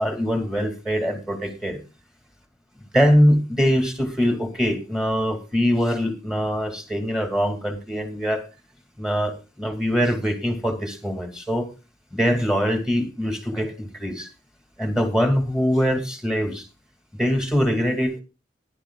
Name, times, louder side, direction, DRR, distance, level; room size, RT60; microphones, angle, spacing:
voice 1, 0.0-1.8 2.9-8.5 9.0-11.7 12.1-14.3 14.8-16.7 17.1-18.2, equal, 5° right, 5 dB, 2.5 m, -23 dB
17.5 x 11.0 x 2.4 m, 0.30 s
head